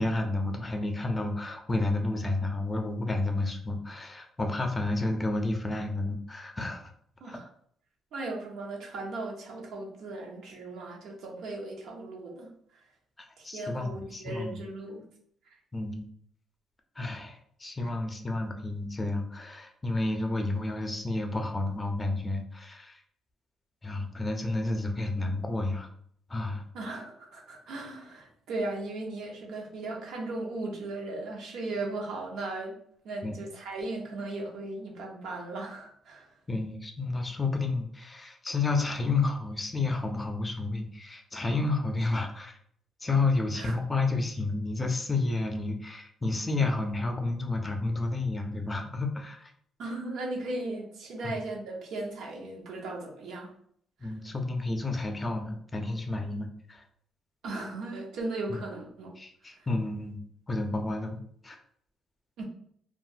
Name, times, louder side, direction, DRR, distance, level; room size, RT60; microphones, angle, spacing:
voice 1, 0.0-6.9 7.2-7.4 13.2-14.6 15.7-16.1 17.0-23.0 23.8-25.9 26.3-26.6 33.2-33.3 36.5-42.6 43.0-49.5 51.2-51.4 54.0-56.8 58.5-58.6 59.2-60.2 60.5-61.6, left 2 dB, 20° left, 4 dB, 0.5 m, -31 dB
voice 2, 8.1-12.5 13.4-15.0 26.7-32.8 33.0-36.3 43.5-43.7 49.8-53.5 54.0-54.1 57.4-59.1 62.4-62.5, right 2 dB, 80° right, -1 dB, 0.8 m, -37 dB
2.4 x 2.0 x 3.9 m, 0.65 s
cardioid pair, 90°, 0 cm